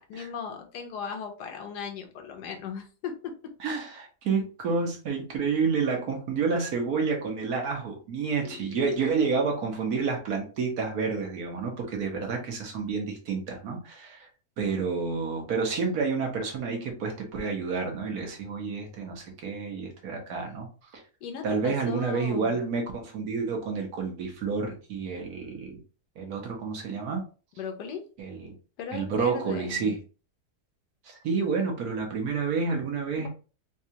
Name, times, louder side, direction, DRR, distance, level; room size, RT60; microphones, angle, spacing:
voice 1, 0.0-3.3 8.4-9.1 21.2-22.6 27.6-28.1 28.8-30.0 33.2-33.3, left 6 dB, 80° left, 4 dB, 1.3 m, -37 dB
voice 2, 3.6-14.3 14.6-20.7 20.9-21.0 21.4-25.8 26.2-27.2 28.2-28.5 28.9-29.9 31.0-33.3, right 5 dB, 65° right, 2 dB, 1.4 m, -29 dB
4.1 x 2.3 x 2.8 m, 0.35 s
omnidirectional pair, 1.8 m